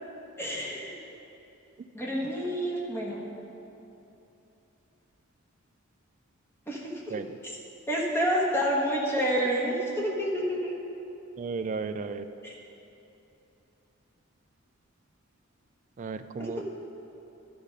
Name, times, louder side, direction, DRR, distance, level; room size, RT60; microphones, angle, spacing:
voice 1, 0.4-1.0 1.9-3.3 6.7-7.1 7.9-10.7, equal, 10° left, -3 dB, 1.2 m, -28 dB
voice 2, 11.4-12.3 16.0-16.6, right 4 dB, 35° right, 10 dB, 0.3 m, -34 dB
11.5 x 5.1 x 5.3 m, 2.9 s
head